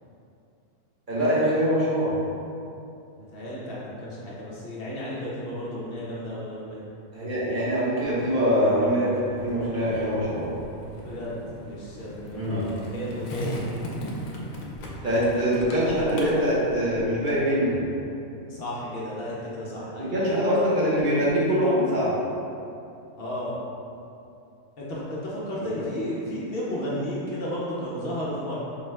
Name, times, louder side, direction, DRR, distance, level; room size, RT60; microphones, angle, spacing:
voice 1, 1.1-2.1 7.1-9.1 9.4-10.5 12.3-12.6 15.0-17.8 20.0-22.1, equal, 40° right, -9 dB, 1.1 m, -23 dB
voice 2, 3.2-6.8 11.0-13.6 18.5-20.3 23.2-23.6 24.8-28.6, equal, 55° left, -7 dB, 0.8 m, -33 dB
Skateboard, 9.4-17.4, equal, 90° left, 1.0 m, -38 dB
4.6 x 2.3 x 3.1 m, 2.7 s
omnidirectional pair, 1.4 m